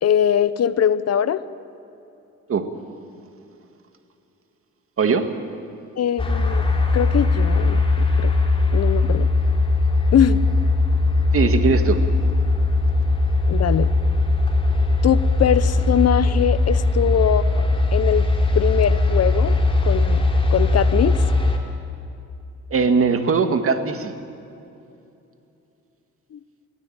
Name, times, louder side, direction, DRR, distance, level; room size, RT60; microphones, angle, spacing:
voice 1, 0.0-1.4 6.0-6.7 6.9-8.3 8.7-9.3 10.1-10.4 13.5-13.9 15.0-17.6 17.9-18.3 18.5-19.6 19.8-21.2 26.3-26.4, left 9 dB, 55° left, 14 dB, 1.0 m, -21 dB
voice 2, 5.0-5.3 11.3-12.0 22.7-24.1, right 5 dB, 45° right, 7 dB, 2.1 m, -20 dB
sound 1, 6.2-21.6, left 2 dB, 20° left, 3.6 m, -19 dB
23.5 x 17.5 x 9.0 m, 2.7 s
cardioid pair, 90°, 30 cm